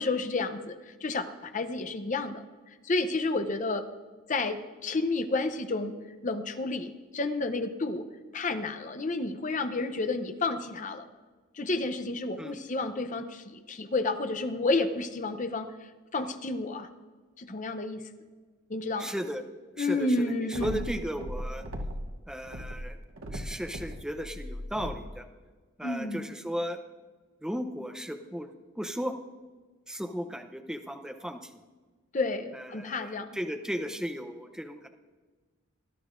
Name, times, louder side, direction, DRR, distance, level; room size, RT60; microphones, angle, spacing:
voice 1, 0.0-2.5 2.8-3.9 4.3-5.9 6.2-8.0 8.3-11.1 11.5-15.7 16.1-16.9 17.4-18.0 18.7-19.1 19.8-20.9 25.8-26.3 32.1-33.3, left 3 dB, 35° left, 9 dB, 0.7 m, -30 dB
voice 2, 19.0-19.4 19.8-21.6 22.3-23.0 23.3-25.3 25.8-26.8 27.4-28.5 28.8-29.2 29.9-31.6 32.5-34.9, equal, 5° right, 5 dB, 0.6 m, -35 dB
sound 1, 20.5-22.1 22.4-25.2, equal, 80° right, 1.0 m, -38 dB
19.0 x 11.0 x 2.6 m, 1.4 s
head